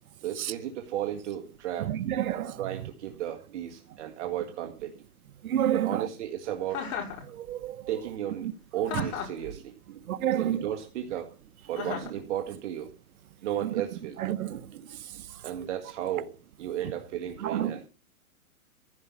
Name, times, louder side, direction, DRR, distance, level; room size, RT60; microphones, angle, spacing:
voice 1, 0.2-2.0 2.3-5.0 5.7-6.9 7.9-10.0 10.4-11.3 11.6-12.9 13.4-14.2 14.5-17.9, right 11 dB, 50° right, 2.0 m, -34 dB
voice 2, 1.8-2.6 5.4-6.0 7.3-7.8 8.9-9.0 10.1-10.7 13.6-13.7 14.2-14.6 17.4-17.7, right 11 dB, 70° right, 1.1 m, -29 dB
Chuckle chortle, 6.7-7.2 8.9-9.4 11.8-12.2, left 7 dB, 60° left, 6.0 m, -34 dB
15.0 x 5.8 x 8.3 m
hypercardioid pair, 145°, 44 cm